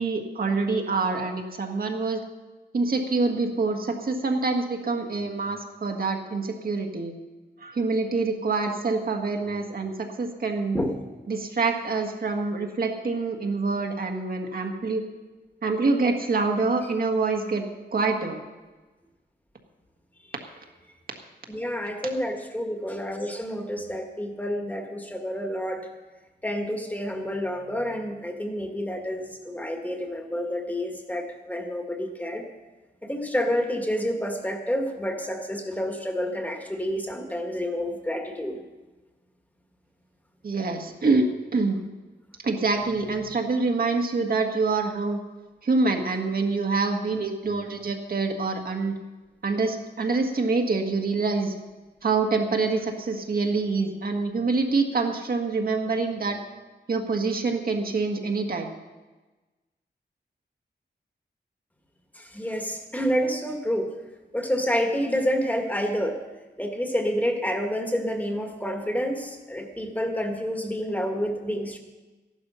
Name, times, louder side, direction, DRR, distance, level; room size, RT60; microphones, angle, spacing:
voice 1, 0.0-2.2 2.7-7.1 7.6-10.8 11.3-15.0 15.6-17.6 17.9-18.4 40.4-41.8 42.4-45.2 45.6-48.9 49.4-51.5 52.0-56.4 56.9-58.7, right 3 dB, 55° right, 3 dB, 1.7 m, -26 dB
voice 2, 21.5-25.9 26.4-32.4 33.0-38.6 62.1-63.9 64.3-66.2 66.6-71.8, equal, 10° left, 3 dB, 1.7 m, -29 dB
14.5 x 11.5 x 5.7 m, 1.2 s
wide cardioid pair, 155°, 18 cm